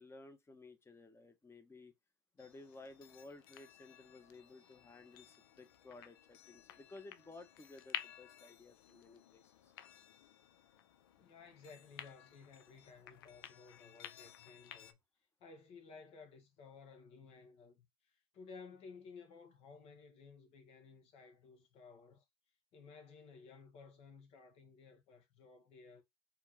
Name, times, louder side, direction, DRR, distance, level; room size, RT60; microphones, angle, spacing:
voice 1, 0.0-1.9 2.3-9.7, left 3 dB, 20° left, 1.4 m, -56 dB
sound 1, 2.4-14.9, left 11 dB, 75° left, 0.5 m, -53 dB
voice 2, 11.2-15.0 15.4-22.2 22.7-26.0, left 4 dB, 55° left, 1.7 m, -56 dB
4.4 x 3.7 x 2.9 m
hypercardioid pair, 65°, 12 cm